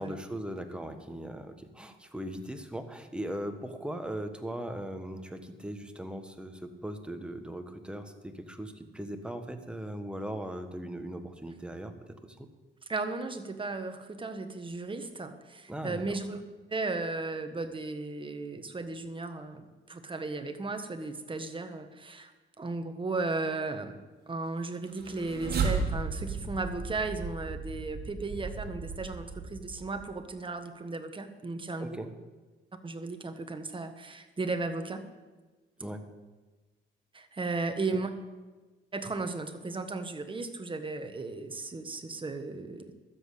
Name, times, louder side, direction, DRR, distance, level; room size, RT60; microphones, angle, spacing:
voice 1, 0.0-12.5 15.7-16.2 31.8-32.1 35.8-36.1 37.9-38.0, right 1 dB, 5° right, 6 dB, 1.4 m, -39 dB
voice 2, 12.9-16.4 16.7-22.3 22.6-24.0 24.3-32.0 32.8-35.0 37.1-38.1 38.9-42.9, right 3 dB, 25° right, 7 dB, 1.4 m, -35 dB
sound 1, 24.9-30.2, right 4 dB, 55° right, 2.0 m, -35 dB
12.5 x 7.7 x 8.2 m, 1.2 s
cardioid pair, 90°, 20 cm